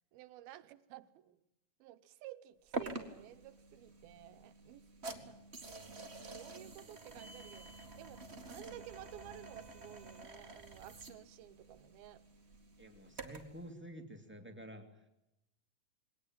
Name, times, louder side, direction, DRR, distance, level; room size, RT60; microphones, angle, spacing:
voice 1, 0.1-1.4 1.8-4.9 5.3-5.4 6.3-7.7 8.0-12.2, right 13 dB, 85° right, 2.9 m, -53 dB
sound 1, 2.7-13.6, right 3 dB, 25° right, 1.4 m, -48 dB
voice 2, 12.8-14.9, equal, 5° right, 1.5 m, -50 dB
22.0 x 18.5 x 9.0 m
omnidirectional pair, 4.2 m